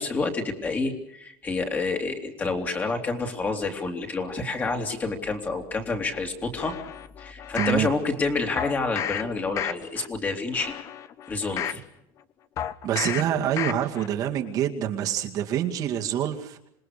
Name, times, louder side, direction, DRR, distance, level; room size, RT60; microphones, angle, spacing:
voice 1, 0.0-6.7 7.2-10.7 11.3-11.8, left 3 dB, 20° left, 4 dB, 3.1 m, -28 dB
sound 1, 6.6-7.8 8.6-9.2 9.6-10.1 10.5-11.8 12.6-13.2 13.6-14.1 14.5-14.6, left 10 dB, 40° left, 1.1 m, -32 dB
voice 2, 7.5-7.9 12.8-16.6, right 10 dB, 50° right, 2 dB, 2.2 m, -26 dB
27.0 x 20.0 x 6.8 m, 0.78 s
cardioid pair, 155°, 8 cm